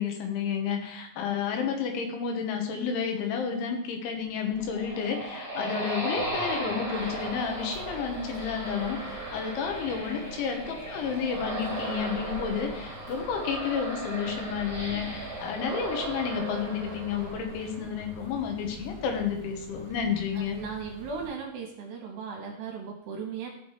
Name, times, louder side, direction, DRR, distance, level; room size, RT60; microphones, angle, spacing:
voice 1, 0.0-20.6, left 6 dB, 75° left, 3 dB, 3.3 m, -31 dB
sound 1, 4.4-17.9, right 2 dB, 15° left, 1.7 m, -36 dB
sound 2, 6.9-21.3, right 1 dB, 40° right, 1.2 m, -46 dB
voice 2, 20.5-23.5, right 5 dB, 70° right, 1 dB, 2.6 m, -37 dB
15.5 x 6.5 x 3.2 m, 0.80 s
omnidirectional pair, 6.0 m